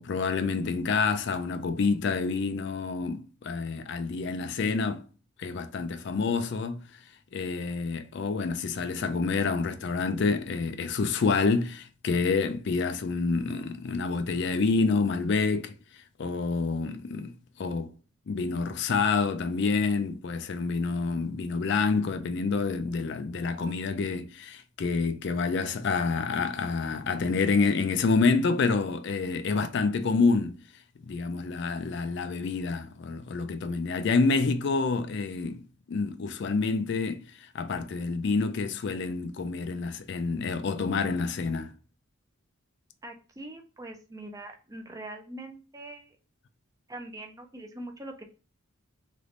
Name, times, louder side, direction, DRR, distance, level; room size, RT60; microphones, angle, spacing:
voice 1, 0.0-5.0 5.4-6.8 7.3-17.9 18.3-30.6 31.0-35.6 35.9-41.7, left 4 dB, 55° left, 0.4 m, -28 dB
voice 2, 43.0-46.2 46.9-48.2, right 1 dB, 15° right, 0.4 m, -42 dB
3.3 x 3.0 x 2.5 m
head